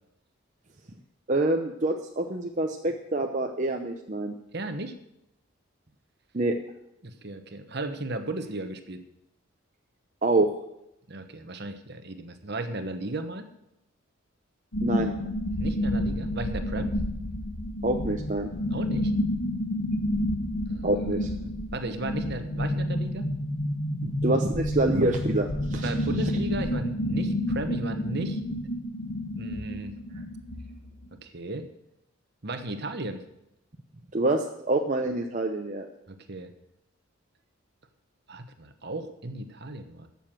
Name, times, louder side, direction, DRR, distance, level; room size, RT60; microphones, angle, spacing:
voice 1, 1.3-4.3 6.3-6.5 10.2-10.5 14.8-15.1 17.8-18.5 20.8-21.3 24.0-25.9 34.1-35.9, right 2 dB, 35° right, 2 dB, 0.7 m, -26 dB
voice 2, 4.5-4.9 7.0-9.0 11.1-13.5 15.6-17.0 18.7-19.1 20.7-23.2 25.7-28.4 29.4-29.9 31.2-31.7 32.4-33.2 36.1-36.5 38.3-40.1, right 2 dB, 50° right, 8 dB, 1.1 m, -35 dB
sound 1, 14.7-31.1, left 1 dB, 80° left, 1.5 m, -30 dB
12.5 x 7.1 x 7.5 m, 0.83 s
head